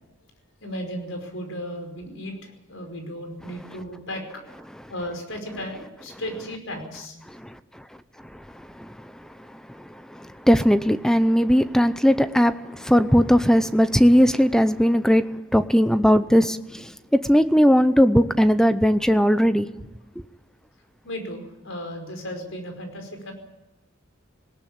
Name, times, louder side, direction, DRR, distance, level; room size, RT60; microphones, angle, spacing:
voice 1, 0.6-4.2 4.9-7.2 21.0-23.3, equal, 70° left, 5.2 m, -35 dB
voice 2, 8.3-9.1 9.5-15.3 15.5-16.9 17.2-19.7, equal, 5° left, 0.6 m, -19 dB
19.5 x 18.0 x 8.6 m
head